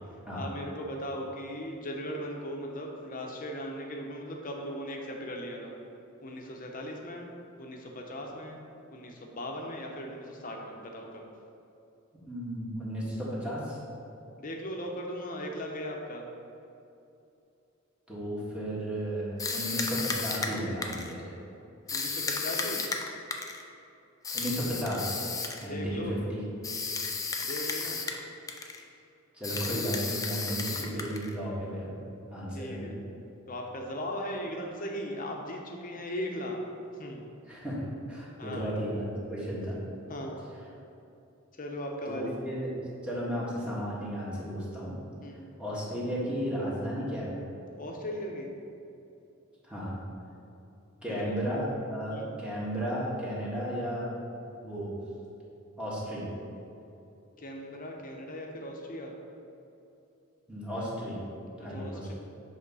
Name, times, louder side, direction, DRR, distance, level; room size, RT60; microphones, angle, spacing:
voice 1, 0.3-5.7 6.2-7.3 7.6-8.6 8.9-11.2 14.4-16.3 21.9-22.8 25.6-26.2 27.4-28.0 30.8-30.9 32.5-33.0 33.5-36.7 37.0-37.3 38.4-38.7 40.1-40.5 41.6-42.3 45.2-45.5 47.8-48.5 51.1-51.3 52.1-52.3 57.4-59.1 61.6-62.1, equal, 40° left, 1 dB, 0.9 m, -38 dB
voice 2, 12.2-13.8 18.1-21.3 24.3-25.2 25.6-26.4 29.3-31.9 32.3-32.9 37.5-37.8 38.1-39.8 42.0-42.7 43.0-45.0 45.6-47.4 49.6-50.0 51.0-54.1 54.4-54.9 55.8-56.2 60.5-61.2 61.6-62.1, equal, 5° right, -7 dB, 1.7 m, -34 dB
sound 1, 19.4-21.1 21.9-23.6 24.2-25.7 26.6-28.2 28.5-28.8 29.4-31.3, left 4 dB, 15° left, 0.5 m, -33 dB
7.9 x 3.6 x 5.5 m, 2.8 s
head